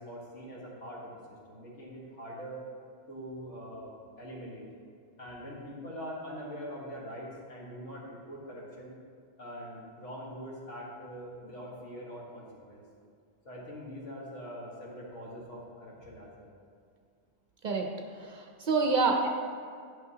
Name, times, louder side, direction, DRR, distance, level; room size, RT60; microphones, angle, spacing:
voice 1, 0.0-2.6 3.1-3.9 4.2-4.7 5.2-8.9 9.4-12.8 13.5-16.5, equal, 90° left, -4 dB, 1.8 m, -43 dB
voice 2, 18.2-19.3, right 4 dB, 55° right, 2 dB, 0.6 m, -27 dB
10.0 x 5.8 x 2.8 m, 2.2 s
omnidirectional pair, 1.2 m